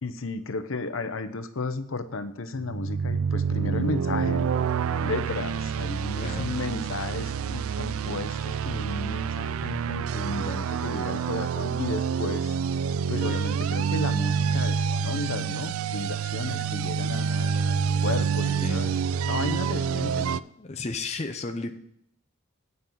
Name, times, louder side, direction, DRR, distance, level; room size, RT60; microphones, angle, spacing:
voice 1, 0.0-12.6 13.1-18.9 19.3-20.4, left 3 dB, 70° left, 11 dB, 0.7 m, -34 dB
sound 1, 2.6-20.4, right 6 dB, 80° right, 0.3 m, -27 dB
voice 2, 6.2-6.5 18.6-18.8 20.6-21.7, left 3 dB, 30° left, 4 dB, 0.6 m, -33 dB
9.1 x 5.5 x 7.5 m, 0.72 s
head